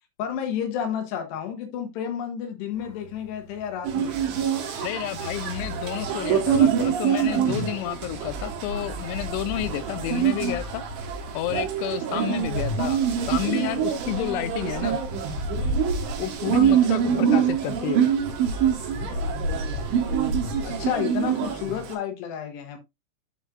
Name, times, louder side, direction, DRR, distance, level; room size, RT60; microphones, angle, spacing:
voice 1, 0.2-4.2 20.6-22.8, left 9 dB, 70° left, 3.2 m, -31 dB
sound 1, 2.7-21.1, left 1 dB, 50° left, 2.4 m, -36 dB
sound 2, 3.8-21.9, right 8 dB, 80° right, 3.6 m, -25 dB
voice 2, 4.8-10.8 11.3-13.0 13.3-15.0 16.2-18.1, left 14 dB, 85° left, 3.0 m, -30 dB
11.5 x 4.5 x 2.4 m
omnidirectional pair, 5.5 m